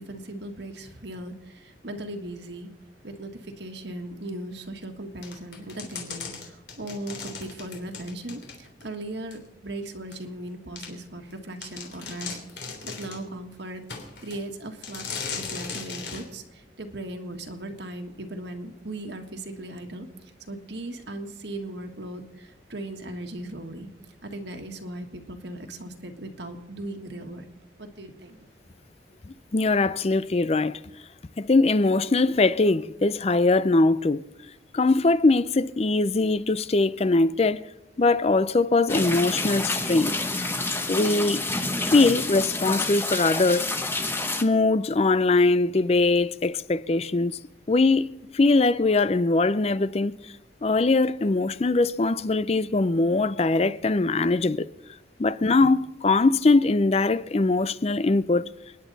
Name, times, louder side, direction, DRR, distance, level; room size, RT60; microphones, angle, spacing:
voice 1, 0.0-2.7 3.0-15.1 15.3-20.1 20.5-23.9 24.2-27.5 27.8-28.4, right 1 dB, 65° right, 1.7 m, -38 dB
sound 1, 5.2-8.9 9.3-9.4 10.1-10.2 10.8-10.9 11.3-11.4 11.6-13.3 13.9-14.4 14.8-16.3, left 5 dB, 60° left, 3.3 m, -37 dB
voice 2, 29.5-30.8 31.4-34.2 34.7-37.6 38.0-40.1 40.9-41.4 41.9-43.7 44.4-47.4 47.7-48.1 48.3-50.3 50.6-54.6 55.2-58.4, left 3 dB, 30° left, 0.4 m, -21 dB
sound 2, 38.9-44.4, left 2 dB, 10° left, 0.9 m, -28 dB
29.5 x 10.0 x 4.1 m
head